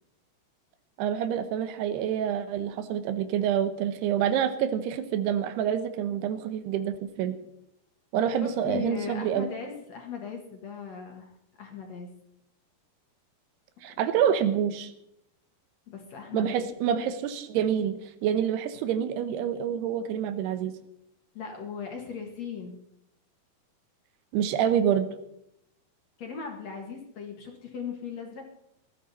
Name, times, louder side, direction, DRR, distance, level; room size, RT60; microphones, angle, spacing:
voice 1, 1.0-7.4 8.1-9.5 13.8-14.9 16.3-20.7 24.3-25.1, right 9 dB, 85° right, 10 dB, 3.1 m, -27 dB
voice 2, 8.4-11.3 11.6-12.1 15.9-16.7 21.3-22.8 26.2-28.4, left 6 dB, 55° left, 2 dB, 2.3 m, -38 dB
19.0 x 13.0 x 4.2 m, 0.79 s
omnidirectional pair, 4.6 m